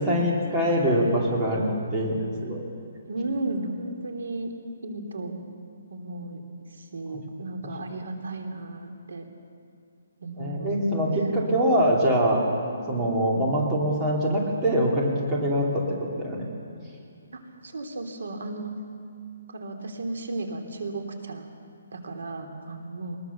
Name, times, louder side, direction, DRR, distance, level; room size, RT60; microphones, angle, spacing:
voice 1, 0.0-2.6 10.4-12.4 12.9-15.8 16.2-16.5, equal, 10° right, -3 dB, 2.7 m, -24 dB
voice 2, 3.1-4.5 4.8-5.3 5.9-6.4 6.7-9.3 10.2-10.8 11.2-11.4 12.7-12.8 17.3-18.7 19.5-21.4 21.9-23.2, right 2 dB, 80° right, 3 dB, 3.2 m, -34 dB
22.5 x 20.5 x 7.0 m, 2.4 s
hypercardioid pair, 175°, 0 cm